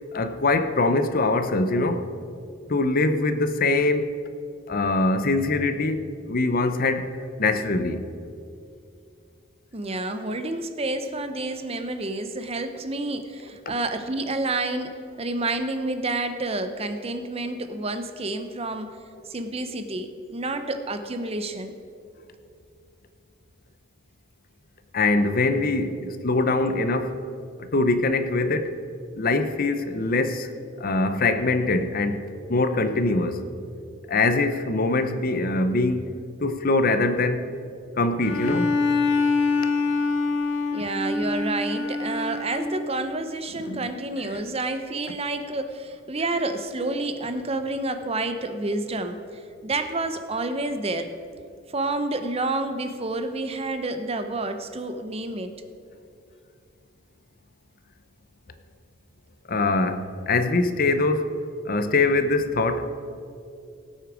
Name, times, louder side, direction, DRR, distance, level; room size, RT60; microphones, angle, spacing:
voice 1, 0.1-2.1 2.7-4.1 4.7-7.1 7.4-8.0 24.9-27.2 27.6-28.7 29.1-30.5 30.8-32.2 32.5-33.4 34.1-36.1 36.4-37.4 38.0-38.7 43.7-43.9 59.5-61.3 61.6-62.9, left 2 dB, 45° left, 0.7 m, -23 dB
voice 2, 9.7-19.0 19.3-21.7 40.7-49.2 49.6-51.1 51.7-55.5, right 2 dB, 30° right, 0.7 m, -29 dB
Bowed string instrument, 38.2-42.9, left 3 dB, 75° left, 1.3 m, -25 dB
17.5 x 8.2 x 5.0 m
head